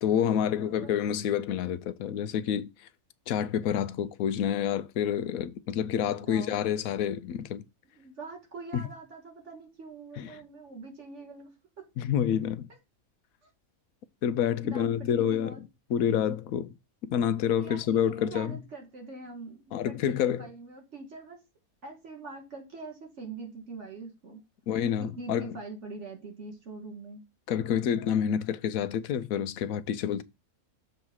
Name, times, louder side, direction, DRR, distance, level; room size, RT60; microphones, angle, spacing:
voice 1, 0.0-2.7 3.3-7.6 8.7-8.8 10.2-10.3 12.0-12.7 14.2-15.5 15.9-16.7 17.0-18.6 19.7-20.5 24.7-25.5 27.5-30.2, left 9 dB, 80° left, 1.0 m, -28 dB
voice 2, 0.6-1.2 6.0-6.6 7.9-11.5 11.8-11.9 14.6-15.6 17.6-21.4 21.8-24.4 25.0-27.2, right 3 dB, 55° right, 2.1 m, -44 dB
7.1 x 3.2 x 6.1 m
omnidirectional pair, 1.5 m